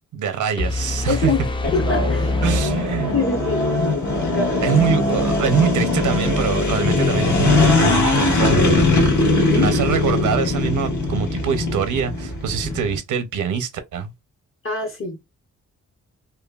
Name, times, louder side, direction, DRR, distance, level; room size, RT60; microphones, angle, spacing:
voice 1, 0.1-1.3 2.4-3.2 4.6-8.8 9.6-14.1, right 7 dB, 80° right, 0.7 m, -24 dB
sound 1, 0.6-3.6, left 2 dB, 15° left, 0.3 m, -25 dB
voice 2, 1.1-1.4 1.7-2.4 3.1-3.6 4.3-4.8 9.3-9.7 14.6-15.2, left 3 dB, 45° left, 0.8 m, -25 dB
sound 2, 1.6-13.0, left 2 dB, 70° left, 1.4 m, -20 dB
2.9 x 2.2 x 2.3 m
wide cardioid pair, 110°, 30 cm